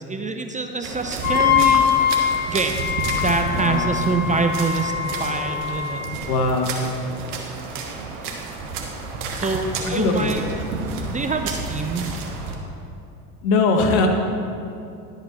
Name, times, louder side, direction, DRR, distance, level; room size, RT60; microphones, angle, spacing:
voice 1, 0.1-2.9 3.2-6.0 9.3-10.4 10.9-12.1, right 4 dB, 15° right, 6 dB, 0.6 m, -25 dB
sound 1, 0.8-12.5, right 3 dB, 75° right, 1.4 m, -31 dB
Wind instrument woodwind instrument, 1.2-6.2, left 9 dB, 35° left, 2.2 m, -23 dB
voice 2, 3.5-3.9 6.3-6.7 9.8-10.3 13.4-14.1, left 3 dB, 65° left, 3 dB, 1.4 m, -20 dB
11.0 x 8.1 x 4.2 m, 2.7 s
hypercardioid pair, 75°, 46 cm